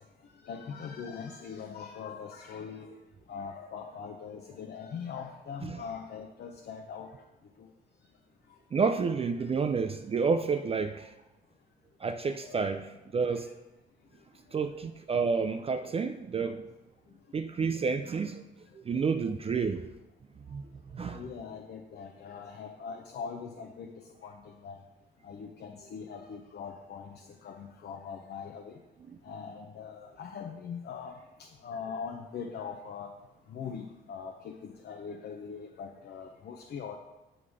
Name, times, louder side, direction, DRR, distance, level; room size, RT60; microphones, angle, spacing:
voice 1, 0.4-3.0 3.3-7.1 12.4-12.6 21.0-23.9 24.2-24.3 24.6-24.8 25.2-27.1 27.4-28.8 29.3-31.1 31.6-33.1 33.5-37.0, left 6 dB, 55° left, 0.7 m, -41 dB
voice 2, 8.7-11.1 12.0-12.8 13.1-13.5 14.5-16.7 17.3-18.4 18.7-19.9 20.5-20.6 20.9-21.2 29.1-29.2, right 5 dB, 30° right, 0.4 m, -30 dB
7.9 x 3.8 x 4.9 m
cardioid pair, 90°, 20 cm